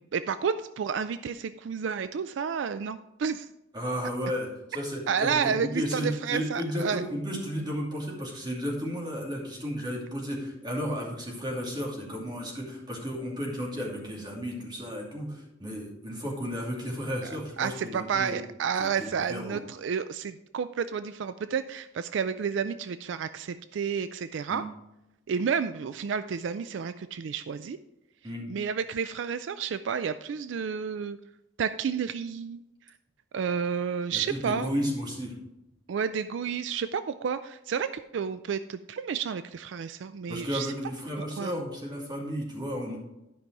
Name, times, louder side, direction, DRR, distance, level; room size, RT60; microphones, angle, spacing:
voice 1, 0.0-3.5 5.1-7.0 17.6-24.6 25.3-27.8 28.5-31.2 31.6-32.6 33.3-34.7 35.9-40.7 41.2-41.6, right 6 dB, 75° right, 12 dB, 0.4 m, -31 dB
voice 2, 3.7-18.4 18.8-19.6 24.5-24.7 28.2-28.5 34.1-35.3 40.3-43.0, equal, 25° right, -2 dB, 2.5 m, -33 dB
11.5 x 5.4 x 4.6 m, 0.91 s
head